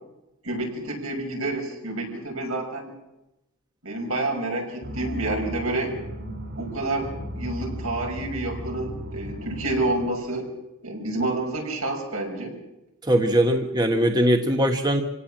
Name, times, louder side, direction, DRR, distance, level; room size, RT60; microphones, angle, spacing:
voice 1, 0.4-2.9 3.8-5.9 6.6-7.1 7.4-10.5 10.8-12.6, right 2 dB, 70° right, 1 dB, 6.3 m, -28 dB
sound 1, 4.8-10.1, equal, 50° right, 5.6 m, -36 dB
voice 2, 13.0-15.0, right 1 dB, 20° right, 4 dB, 1.4 m, -21 dB
27.0 x 17.0 x 7.5 m, 0.94 s
head